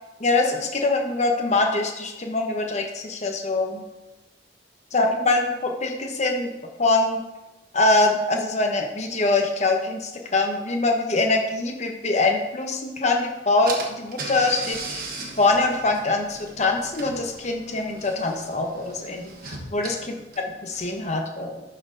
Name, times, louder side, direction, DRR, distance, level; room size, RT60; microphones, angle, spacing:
voice 1, 0.2-3.8 4.9-6.5 6.8-7.2 7.7-15.1 15.4-20.0 20.6-21.6, left 2 dB, 40° left, 3 dB, 1.0 m, -23 dB
Car / Engine, 13.2-13.3 13.7-21.1, right 3 dB, 55° right, 1.2 m, -38 dB
11.5 x 4.4 x 3.9 m, 1.0 s
head